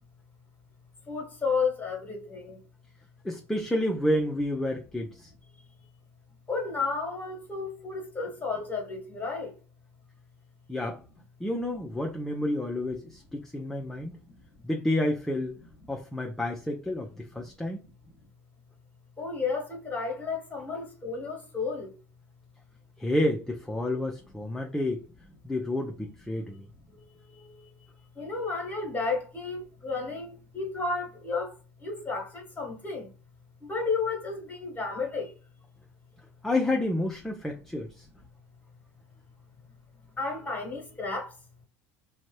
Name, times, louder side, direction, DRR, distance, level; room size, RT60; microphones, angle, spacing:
voice 1, 1.1-2.6 6.5-9.5 19.2-21.9 28.2-31.5 31.8-33.1 33.6-35.3 40.2-41.3, left 4 dB, 25° left, 1.2 m, -32 dB
voice 2, 3.2-5.3 10.7-11.0 11.4-14.2 14.6-15.6 15.9-17.8 23.0-25.0 25.4-26.7 36.4-38.1, left 1 dB, 5° left, 0.5 m, -30 dB
2.6 x 2.2 x 3.1 m
hypercardioid pair, 85°, 7 cm